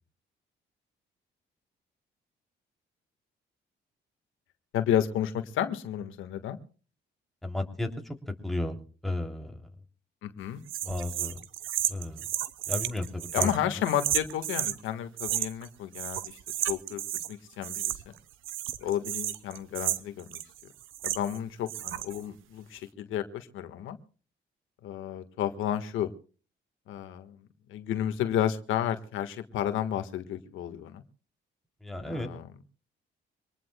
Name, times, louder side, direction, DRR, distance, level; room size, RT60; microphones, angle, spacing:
voice 1, 4.7-6.6 10.2-10.6 13.3-16.4 16.7-17.0 17.3-18.1 18.8-20.4 21.0-24.0 24.8-26.1 26.9-27.4 27.7-31.0 32.1-32.5, left 10 dB, 85° left, 8 dB, 1.6 m, -32 dB
voice 2, 7.4-7.9 8.4-8.8 9.0-9.5 10.8-11.4 11.9-12.2 12.7-13.5 31.8-32.3, left 2 dB, ahead, 3 dB, 3.0 m, -33 dB
sound 1, 10.7-14.8 15.2-15.7 15.9-17.3 17.6-18.2 18.4-21.4 21.7-22.2, right 13 dB, 85° right, 0.9 m, -32 dB
25.0 x 19.5 x 2.3 m, 0.38 s
cardioid pair, 90°, 20 cm